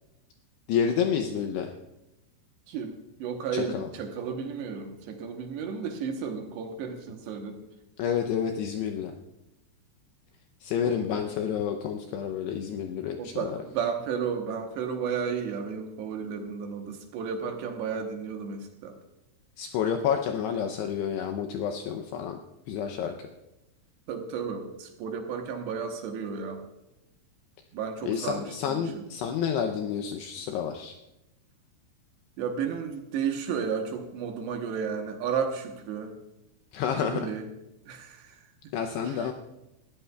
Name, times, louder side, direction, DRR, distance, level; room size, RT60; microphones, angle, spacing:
voice 1, 0.7-1.7 3.5-3.9 8.0-9.1 10.6-13.6 19.6-22.4 22.7-23.3 28.0-31.0 36.7-37.3 38.7-39.3, left 8 dB, 85° left, 5 dB, 2.4 m, -29 dB
voice 2, 3.2-7.6 10.9-11.3 13.2-19.0 24.1-26.6 27.7-28.8 32.4-36.1 37.0-37.4 37.9-38.3 39.1-39.2, right 6 dB, 75° right, 4 dB, 3.0 m, -33 dB
20.0 x 13.5 x 2.3 m, 0.94 s
omnidirectional pair, 5.5 m